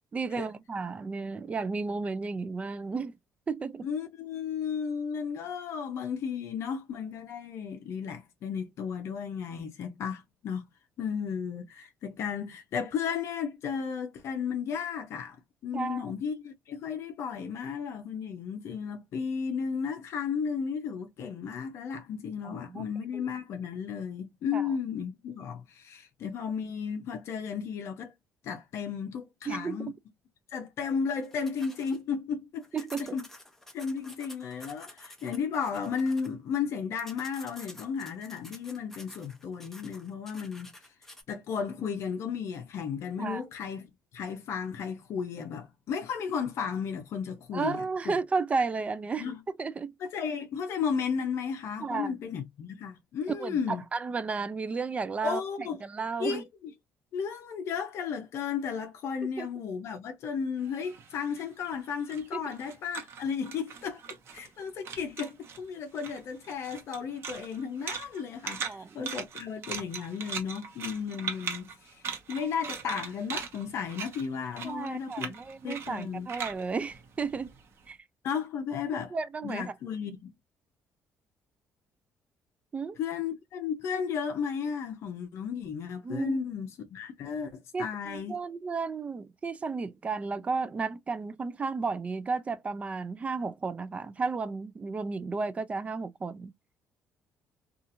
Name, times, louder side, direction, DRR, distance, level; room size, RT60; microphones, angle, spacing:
voice 1, 0.1-3.2 3.5-3.9 15.7-16.1 22.4-22.9 23.1-23.2 24.5-24.7 29.5-29.9 32.7-33.2 43.2-43.4 47.5-49.3 49.6-49.9 51.8-52.2 53.4-56.4 59.4-59.5 62.3-62.5 68.6-69.1 74.6-77.5 77.9-78.0 79.1-79.7 82.7-83.0 86.0-86.4 87.7-96.5, right 4 dB, 25° right, 0.3 m, -33 dB
voice 2, 3.8-10.7 11.0-28.1 28.4-29.9 30.5-32.7 33.0-33.2 33.7-40.7 41.3-48.2 49.2-49.4 50.0-53.8 55.2-55.8 56.2-56.4 57.1-72.0 72.3-75.4 75.6-76.3 78.2-79.1 79.4-80.3 83.0-88.4, left 6 dB, 65° left, 0.6 m, -34 dB
sound 1, 31.2-32.0 32.6-36.3 37.0-41.2, left 1 dB, 5° left, 0.7 m, -50 dB
sound 2, 60.6-64.6 64.8-65.6 65.9-77.8, right 6 dB, 55° right, 0.8 m, -40 dB
2.8 x 2.4 x 2.5 m
cardioid pair, 110°, 5 cm